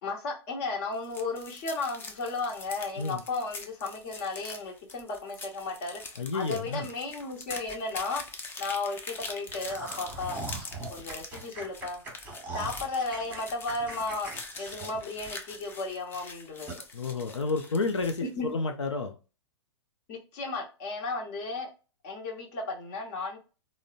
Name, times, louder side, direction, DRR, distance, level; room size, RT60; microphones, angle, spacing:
voice 1, 0.0-8.2 8.6-10.5 10.9-12.0 12.5-14.3 14.6-16.7 18.4-18.5 20.1-21.7 22.0-23.4, left 3 dB, 40° left, 1.0 m, -34 dB
sound 1, 0.9-18.3, left 3 dB, 15° left, 0.4 m, -44 dB
voice 2, 6.2-6.9 16.9-19.2, left 3 dB, 85° left, 0.5 m, -30 dB
sound 2, 9.5-15.8 16.1-16.2 16.7-16.8, right 3 dB, 10° right, 1.1 m, -41 dB
3.7 x 2.1 x 2.4 m
hypercardioid pair, 115°, 15 cm